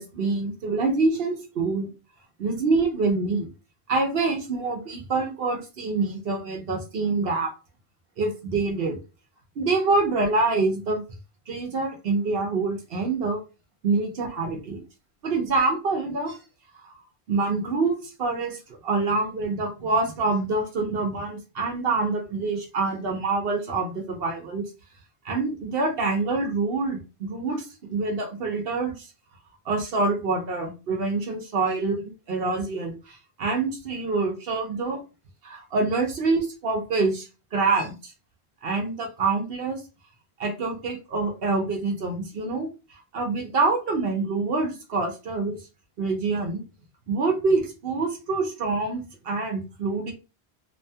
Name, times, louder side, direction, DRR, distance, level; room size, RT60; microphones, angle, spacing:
voice 1, 0.0-1.9 2.4-3.5 3.9-7.5 8.2-9.0 9.6-11.0 11.5-13.4 13.8-14.8 15.2-16.4 16.8-17.0 17.3-24.6 25.2-29.1 29.7-35.0 35.4-38.1 38.6-39.8 40.4-42.7 43.1-45.6 46.0-46.6 47.1-50.1, right 3 dB, 65° right, 2 dB, 0.9 m, -26 dB
2.6 x 2.2 x 2.7 m, 0.30 s
omnidirectional pair, 1.1 m